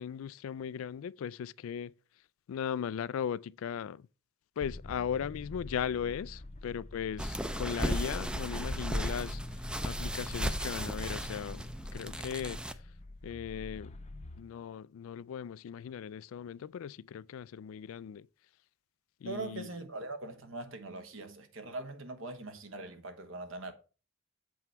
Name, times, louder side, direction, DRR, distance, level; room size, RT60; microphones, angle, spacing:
voice 1, 0.0-1.9 2.5-4.1 4.6-9.4 9.8-12.6 13.2-13.9 14.4-18.3 19.2-19.7, left 8 dB, 80° left, 0.3 m, -37 dB
sound 1, 4.6-14.4, left 1 dB, 35° left, 0.6 m, -46 dB
sound 2, 7.2-12.7, equal, 5° right, 0.4 m, -35 dB
voice 2, 19.2-23.7, right 2 dB, 70° right, 1.3 m, -41 dB
7.9 x 4.6 x 5.6 m
head